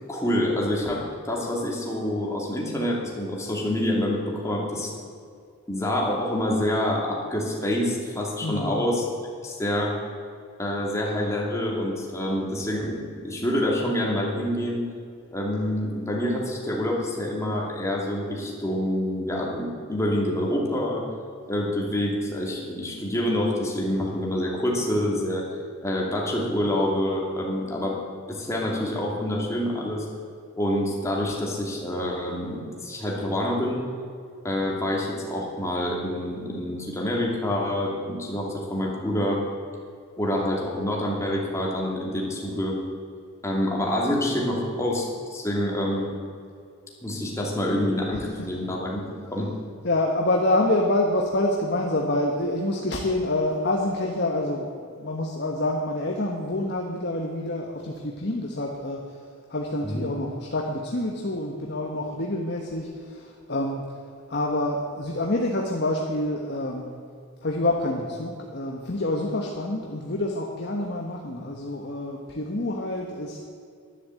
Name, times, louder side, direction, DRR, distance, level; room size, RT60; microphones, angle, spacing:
voice 1, 0.1-4.9 5.7-9.1 9.4-9.9 10.6-13.0 13.2-14.8 15.3-21.1 21.5-25.5 25.8-28.0 28.3-30.1 30.6-33.8 34.4-39.4 40.2-42.8 43.4-46.2 47.0-49.5 59.8-60.0, left 1 dB, 15° left, -2 dB, 2.6 m, -27 dB
voice 2, 8.4-8.9 49.8-54.7 55.0-59.0 59.5-63.9 64.3-66.9 67.4-73.4, left 1 dB, 50° left, 0 dB, 1.3 m, -27 dB
11.5 x 11.0 x 7.7 m, 2.3 s
head